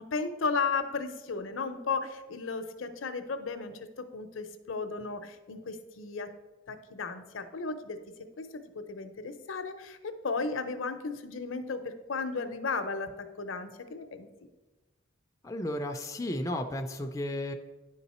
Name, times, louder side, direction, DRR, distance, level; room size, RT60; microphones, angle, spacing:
voice 1, 0.0-6.3 6.7-8.0 8.4-13.1 13.4-14.3, left 4 dB, 70° left, 9 dB, 0.6 m, -34 dB
voice 2, 15.4-17.5, left 1 dB, 15° left, 4 dB, 0.4 m, -33 dB
10.0 x 3.9 x 4.2 m, 1.1 s
head